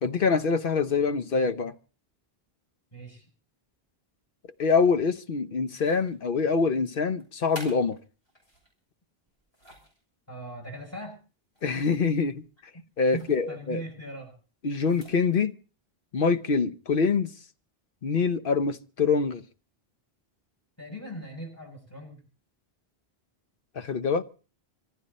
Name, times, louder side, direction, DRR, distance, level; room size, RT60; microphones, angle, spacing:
voice 1, 0.0-1.7 4.6-8.0 11.6-12.4 13.0-13.8 14.6-15.5 16.1-17.3 18.0-19.4 23.8-24.2, left 5 dB, 60° left, 1.1 m, -25 dB
voice 2, 2.9-3.3 10.3-11.1 13.1-14.3 20.8-22.2, right 1 dB, 15° left, 7.9 m, -40 dB
sound 1, 5.7-6.4 7.2-8.7 9.3-10.0 11.5-12.1 12.3-12.5 13.1-13.4 14.7-15.3, right 1 dB, 85° left, 7.4 m, -48 dB
25.5 x 11.0 x 4.2 m
omnidirectional pair, 1.0 m